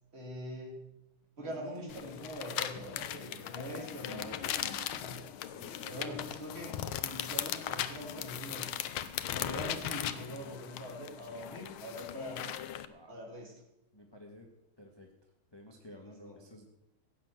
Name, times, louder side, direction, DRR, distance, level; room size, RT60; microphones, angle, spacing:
voice 1, 0.1-0.8 1.4-5.2 5.9-8.8 9.3-12.4 13.1-13.6 16.2-16.4, equal, 30° right, -1 dB, 3.3 m, -43 dB
voice 2, 1.4-1.9 3.1-3.3 5.5-6.3 12.8-13.2 13.9-14.5 14.8-16.6, left 1 dB, 15° left, 1 dB, 1.4 m, -52 dB
sound 1, 1.9-12.9, left 11 dB, 85° left, 1.6 m, -38 dB
16.0 x 7.6 x 7.8 m, 0.89 s
omnidirectional pair, 2.2 m